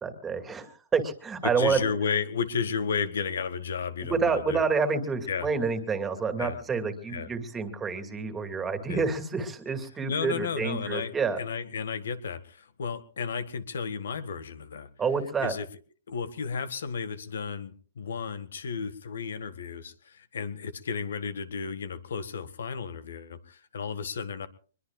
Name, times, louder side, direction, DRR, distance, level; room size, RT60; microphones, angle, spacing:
voice 1, 0.0-1.8 4.0-11.4 15.0-15.5, right 5 dB, 10° right, 7 dB, 2.3 m, -28 dB
voice 2, 1.4-4.6 5.3-5.5 6.4-6.6 7.1-7.3 8.9-9.0 10.1-14.9 15.4-15.7 16.1-24.5, left 6 dB, 85° left, 13 dB, 1.8 m, -33 dB
24.5 x 21.5 x 2.4 m, 0.41 s
hypercardioid pair, 155°, 0 cm